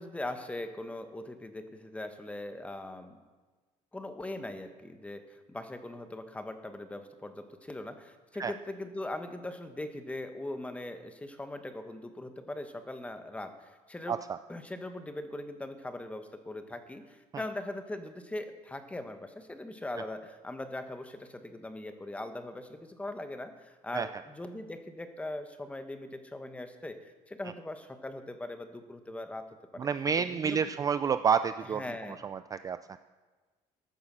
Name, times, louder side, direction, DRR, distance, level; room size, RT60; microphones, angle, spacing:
voice 1, 0.0-3.2 3.9-14.1 14.5-29.5 29.7-29.9 30.2-30.6 31.7-32.2, left 1 dB, 10° left, 8 dB, 1.1 m, -40 dB
voice 2, 14.1-14.4 23.9-24.1 29.8-31.8 32.2-33.0, right 7 dB, 25° right, 11 dB, 0.3 m, -29 dB
14.0 x 8.3 x 6.2 m, 1.3 s
cardioid pair, 140°, 14 cm